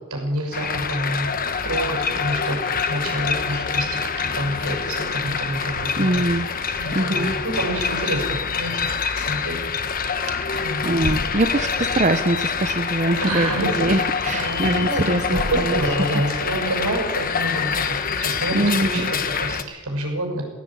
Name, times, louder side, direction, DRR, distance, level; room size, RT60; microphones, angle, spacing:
voice 1, 0.1-1.3 1.6-6.2 6.8-9.7 10.6-10.9 13.2-20.4, right 1 dB, 80° right, 2 dB, 6.9 m, -28 dB
sound 1, 0.5-19.6, left 5 dB, 40° left, 1.2 m, -26 dB
voice 2, 6.0-6.5 6.9-7.3 10.4-16.1 18.5-19.1, right 1 dB, 35° right, 7 dB, 1.0 m, -23 dB
17.5 x 17.0 x 9.0 m, 1.2 s
head